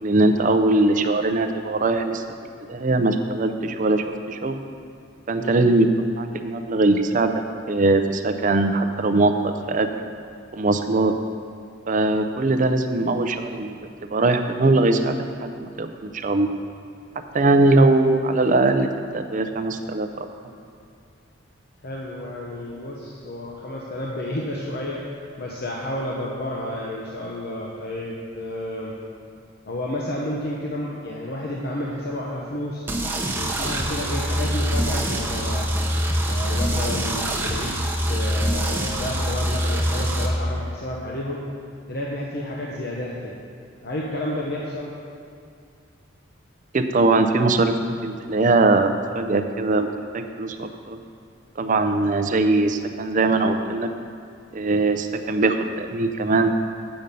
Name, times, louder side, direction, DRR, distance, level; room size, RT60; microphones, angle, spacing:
voice 1, 0.0-4.6 5.3-7.3 7.7-9.9 10.5-11.1 11.9-13.8 14.1-16.5 17.3-18.9 19.1-20.3 46.7-49.9 50.1-51.0 51.6-53.9 54.5-56.5, right 2 dB, 40° right, 7 dB, 0.5 m, -21 dB
voice 2, 21.8-25.0 25.4-28.9 29.7-32.9 33.3-35.7 36.3-37.7 38.0-41.4 41.9-43.3 43.8-44.9, left 1 dB, 55° left, -3 dB, 0.8 m, -31 dB
sound 1, 32.9-40.3, equal, 10° right, 0.7 m, -24 dB
7.8 x 7.0 x 5.3 m, 2.4 s
head